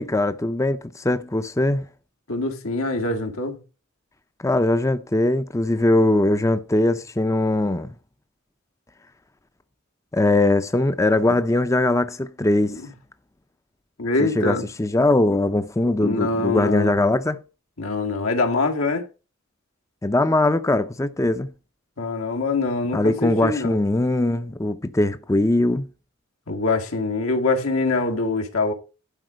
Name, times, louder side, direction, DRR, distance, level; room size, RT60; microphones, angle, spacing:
voice 1, 0.0-1.8 4.4-7.9 10.1-12.8 14.2-17.4 20.0-21.5 22.9-25.9, left 2 dB, 15° left, 0.5 m, -21 dB
voice 2, 2.3-3.6 12.7-12.9 14.0-14.6 16.0-16.9 17.8-19.1 22.0-23.8 26.5-28.7, left 3 dB, 85° left, 2.0 m, -24 dB
11.5 x 4.9 x 6.2 m
head